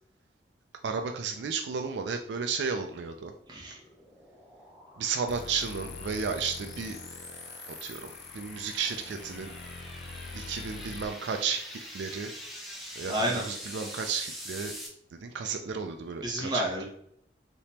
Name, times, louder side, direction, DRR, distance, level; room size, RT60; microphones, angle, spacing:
voice 1, 0.8-3.3 5.0-7.0 7.8-8.0 8.3-9.5 10.3-11.6 11.9-12.3 13.0-13.1 13.5-14.7 15.1-16.8, right 5 dB, 75° right, 6 dB, 0.4 m, -33 dB
sound 1, 3.4-14.9, equal, ahead, 0.7 m, -45 dB
voice 2, 3.5-3.8 13.1-13.5 16.2-16.8, right 1 dB, 25° right, -3 dB, 1.1 m, -30 dB
sound 2, 5.3-11.0, left 4 dB, 60° left, 0.4 m, -44 dB
3.4 x 2.9 x 4.2 m, 0.71 s
head